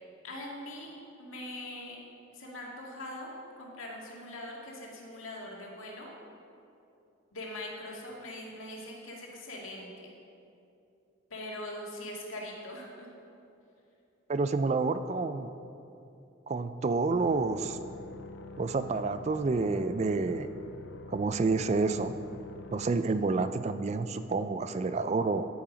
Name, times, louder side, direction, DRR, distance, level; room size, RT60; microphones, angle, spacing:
voice 1, 0.2-0.9 1.2-2.0 2.3-6.1 7.3-10.1 11.3-13.1, left 1 dB, 85° left, -2 dB, 2.0 m, -42 dB
voice 2, 14.3-15.5 16.5-17.8 18.6-20.5 21.1-22.1 22.7-25.5, right 3 dB, 35° right, 11 dB, 0.3 m, -29 dB
sound 1, 17.1-22.9, left 3 dB, 60° left, 0.5 m, -46 dB
10.5 x 8.7 x 5.1 m, 2.7 s
head